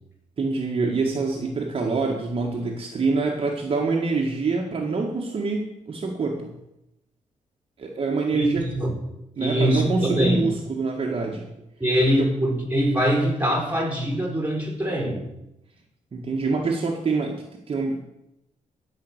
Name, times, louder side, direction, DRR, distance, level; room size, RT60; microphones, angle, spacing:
voice 1, 0.4-6.5 7.8-8.6 9.4-11.5 12.2-12.3 16.1-18.0, right 3 dB, 45° right, 0 dB, 1.9 m, -25 dB
voice 2, 8.3-9.0 9.4-10.5 11.8-15.2, equal, 15° right, 2 dB, 4.4 m, -23 dB
15.0 x 6.0 x 8.2 m, 0.88 s
cardioid pair, 105°, 13 cm